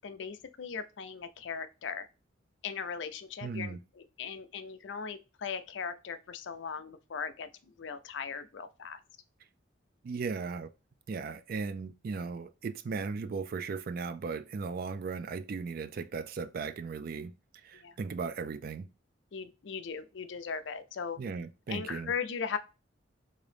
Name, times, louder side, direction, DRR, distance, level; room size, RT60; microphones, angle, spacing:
voice 1, 0.0-2.1 2.6-9.0 17.8-17.9 19.3-21.2 21.7-22.6, left 6 dB, 65° left, 0.4 m, -38 dB
voice 2, 3.4-3.8 10.0-10.7 11.1-17.3 17.6-18.9 21.2-22.1, right 5 dB, 50° right, 0.3 m, -37 dB
3.7 x 2.6 x 3.3 m
head